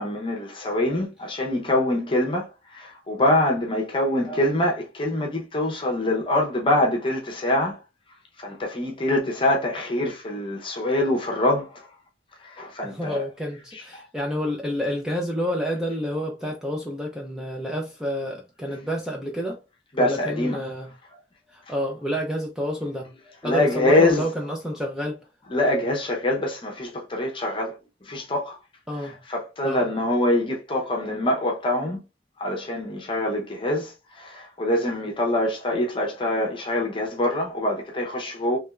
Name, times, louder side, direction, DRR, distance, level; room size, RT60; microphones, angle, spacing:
voice 1, 0.0-7.8 8.4-11.9 12.4-13.2 13.7-14.1 19.9-20.6 23.4-24.2 25.5-28.6 29.0-32.0 32.4-38.6, left 1 dB, 30° left, 0.8 m, -24 dB
voice 2, 12.8-19.6 20.0-20.9 21.5-23.1 23.4-25.2 28.9-29.2 29.6-29.9, equal, 5° right, 0.6 m, -29 dB
3.4 x 3.1 x 2.3 m
head